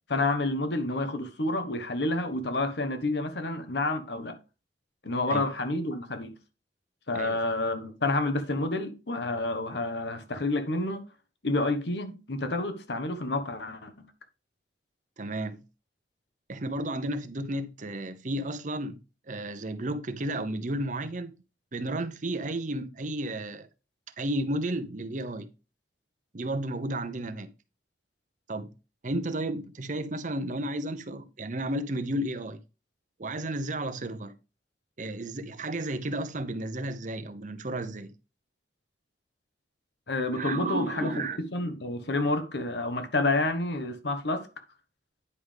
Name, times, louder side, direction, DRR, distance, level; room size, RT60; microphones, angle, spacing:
voice 1, 0.1-4.4 5.0-6.3 7.1-11.0 11.4-14.1 40.1-44.5, left 2 dB, 75° left, 1.2 m, -29 dB
voice 2, 15.2-15.6 16.5-19.0 19.3-21.4 21.7-23.7 24.2-25.5 26.3-27.5 28.5-28.7 29.0-32.6 33.2-34.3 35.0-38.1 40.3-41.4, right 1 dB, 45° right, 0.8 m, -33 dB
9.7 x 5.1 x 3.5 m
head